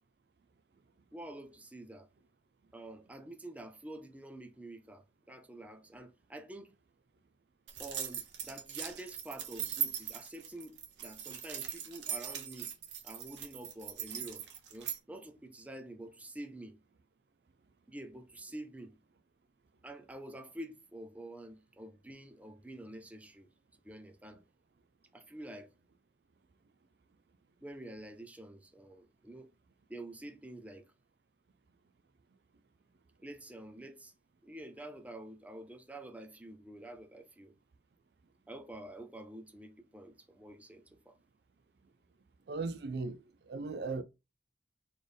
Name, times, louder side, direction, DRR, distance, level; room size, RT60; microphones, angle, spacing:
voice 1, 1.1-2.1 2.7-6.7 7.8-12.7 13.0-14.4 14.7-16.8 17.9-18.9 19.8-23.5 23.8-24.4 25.1-25.7 27.6-29.5 29.9-30.8 33.2-34.1 34.4-37.5 38.5-41.2, right 1 dB, 10° right, 0.5 m, -48 dB
sound 1, 7.7-15.0, right 9 dB, 85° right, 0.9 m, -40 dB
voice 2, 42.5-44.0, right 3 dB, 65° right, 0.4 m, -37 dB
4.2 x 3.2 x 3.3 m
head